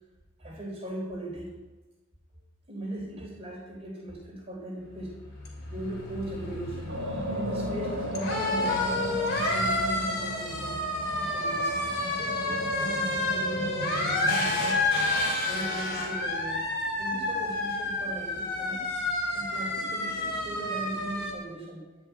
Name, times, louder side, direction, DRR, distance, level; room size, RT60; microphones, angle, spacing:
voice 1, 0.4-1.6 2.7-5.2 5.7-7.0 7.3-10.8 11.2-11.8 12.2-14.9 15.5-16.6 16.9-18.9 19.3-21.8, right 1 dB, 30° right, -3 dB, 3.7 m, -38 dB
sound 1, 4.9-21.3, left 2 dB, 45° left, 3.1 m, -30 dB
sound 2, 6.9-17.0, equal, 50° right, 2.2 m, -36 dB
12.0 x 6.0 x 9.1 m, 1.2 s
head